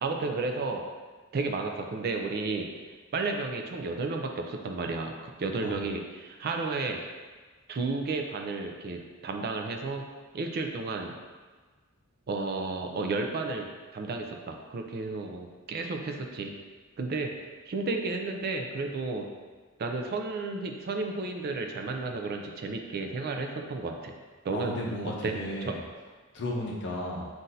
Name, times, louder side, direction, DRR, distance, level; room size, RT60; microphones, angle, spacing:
voice 1, 0.0-0.8 1.3-2.9 3.1-7.0 7.7-10.1 10.3-11.2 12.3-16.5 17.0-17.3 17.7-19.3 19.8-24.2 24.4-24.7 25.0-25.8, right 3 dB, 45° right, 3 dB, 0.4 m, -32 dB
voice 2, 24.5-25.7 26.3-27.3, left 1 dB, 60° left, -2 dB, 0.7 m, -34 dB
5.7 x 2.6 x 2.6 m, 1.4 s
head